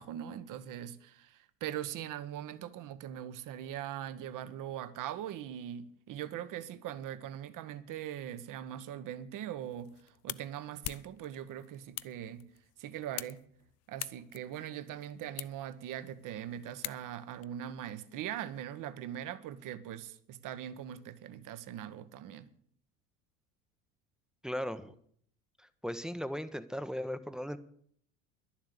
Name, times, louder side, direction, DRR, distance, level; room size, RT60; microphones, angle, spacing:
voice 1, 0.0-12.4 12.8-13.4 13.9-22.5, right 10 dB, 45° right, 1.2 m, -41 dB
sound 1, 9.6-17.4, left 16 dB, 40° left, 0.5 m, -46 dB
voice 2, 24.4-24.9 25.6-27.6, equal, ahead, 0.9 m, -37 dB
11.5 x 7.3 x 9.9 m
hypercardioid pair, 70°, 43 cm